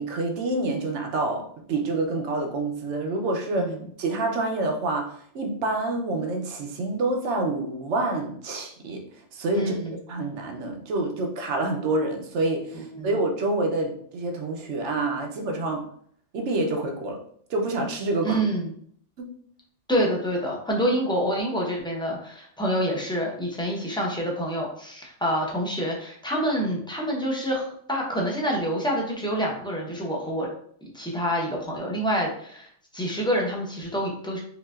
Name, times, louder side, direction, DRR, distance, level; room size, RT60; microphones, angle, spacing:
voice 1, 0.0-9.0 9.3-9.8 10.1-15.8 16.3-17.2 17.5-18.4 19.2-19.3, right 2 dB, 75° right, 2 dB, 1.0 m, -27 dB
voice 2, 9.5-10.0 12.9-13.1 18.2-18.7 19.9-30.5 30.9-32.7 32.9-34.4, equal, 5° left, -2 dB, 0.6 m, -27 dB
4.9 x 2.6 x 2.4 m, 0.62 s
omnidirectional pair, 1.2 m